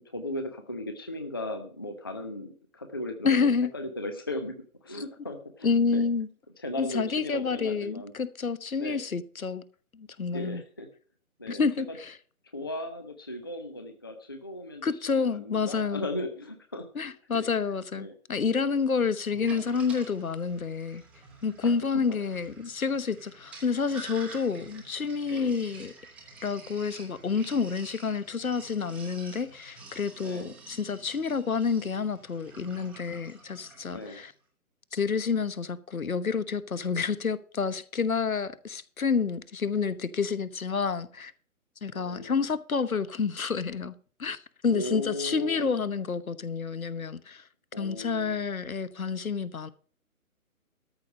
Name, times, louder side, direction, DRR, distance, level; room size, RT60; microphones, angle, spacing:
voice 1, 0.1-4.5 4.8-6.0 6.6-8.1 8.7-9.0 10.3-10.9 11.4-11.6 12.5-17.4 18.0-18.1 18.5-18.7 21.6-21.7 25.3-25.5 30.2-30.5 33.9-34.2 41.9-42.5 44.7-45.7 47.7-48.4, left 1 dB, 15° left, 0.5 m, -37 dB
voice 2, 3.2-3.7 5.6-6.3 6.8-9.6 9.9-10.6 11.5-12.1 14.8-16.1 16.9-21.0 21.4-25.9 26.4-34.3 34.9-41.3 41.8-43.9 44.2-44.4 44.6-47.4 47.8-49.7, left 5 dB, 70° left, 1.1 m, -29 dB
Sink (filling or washing), 19.2-34.3, right 3 dB, 5° right, 1.0 m, -49 dB
13.5 x 5.1 x 7.4 m
figure-of-eight pair, 140°, 44 cm